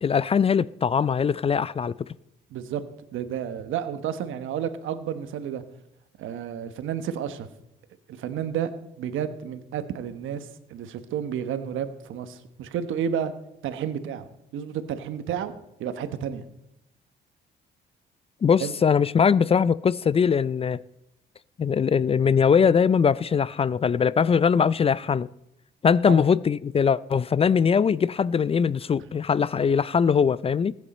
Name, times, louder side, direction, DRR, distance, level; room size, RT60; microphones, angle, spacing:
voice 1, 0.0-1.9 18.4-20.8 21.6-25.3 25.8-30.8, left 6 dB, 30° left, 0.3 m, -21 dB
voice 2, 3.1-5.6 6.2-7.5 8.1-8.7 9.0-13.3 13.6-15.5 15.8-16.4 18.6-18.7 26.1-26.2, right 8 dB, 85° right, 1.1 m, -31 dB
20.5 x 8.4 x 4.2 m
cardioid pair, 90°, 20 cm